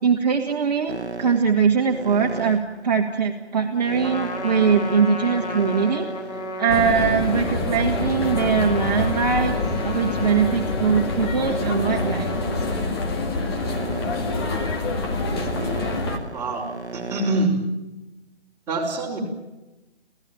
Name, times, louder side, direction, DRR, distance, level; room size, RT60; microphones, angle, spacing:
voice 1, 0.0-6.1 6.6-9.6 9.8-12.3, right 6 dB, 40° right, 2 dB, 1.8 m, -21 dB
sound 1, 0.9-8.3 8.9-17.5, right 4 dB, 80° right, 1.3 m, -36 dB
Trumpet, 4.0-12.8, left 2 dB, 40° left, 3.2 m, -34 dB
sound 2, 6.7-16.2, left 3 dB, 25° left, 2.1 m, -26 dB
voice 2, 16.3-16.7 16.9-17.6 18.7-19.2, right 2 dB, 5° right, -6 dB, 4.7 m, -24 dB
28.0 x 16.5 x 9.1 m, 1.1 s
figure-of-eight pair, 145°, 33 cm